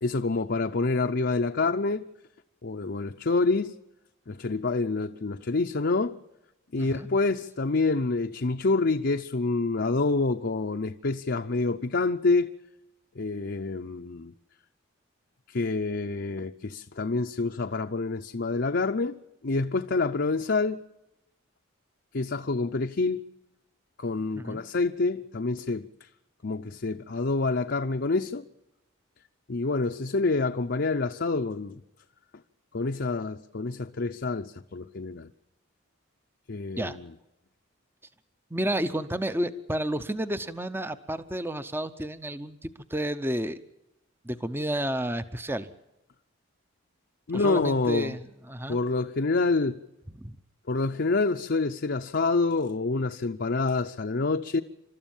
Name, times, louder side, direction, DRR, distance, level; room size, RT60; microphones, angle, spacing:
voice 1, 0.0-2.0 2.6-3.7 4.3-6.2 6.7-12.5 13.2-14.3 15.5-19.2 19.4-20.8 22.1-23.2 24.0-26.1 26.4-28.5 29.5-31.8 32.7-35.3 36.5-37.1 47.3-48.2 48.7-49.8 50.7-54.6, left 3 dB, 50° left, 0.7 m, -27 dB
voice 2, 6.8-7.1 24.4-24.6 36.8-37.0 38.5-43.6 44.2-45.7 47.3-48.2 48.5-48.8 50.2-50.4, right 1 dB, 10° right, 0.7 m, -31 dB
29.5 x 13.5 x 7.2 m
head